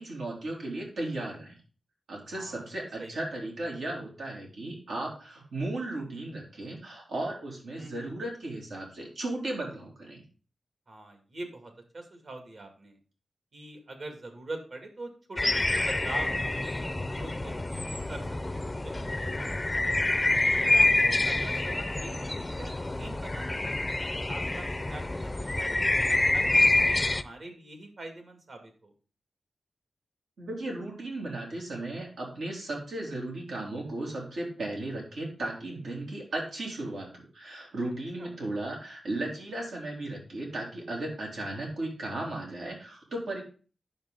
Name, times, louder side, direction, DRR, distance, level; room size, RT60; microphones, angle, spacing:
voice 1, 0.0-1.5 2.1-10.2 30.4-43.4, right 2 dB, 85° right, -1 dB, 3.1 m, -35 dB
voice 2, 2.3-3.1 7.8-8.1 10.9-13.0 13.5-18.2 18.5-19.9 20.5-22.3 22.6-23.7 24.3-25.9 26.3-28.9 38.2-38.3, right 2 dB, 55° right, 4 dB, 2.3 m, -44 dB
sound 1, 15.4-27.2, left 2 dB, 20° left, 0.5 m, -27 dB
9.5 x 6.9 x 3.8 m, 0.37 s
wide cardioid pair, 110°, 0 cm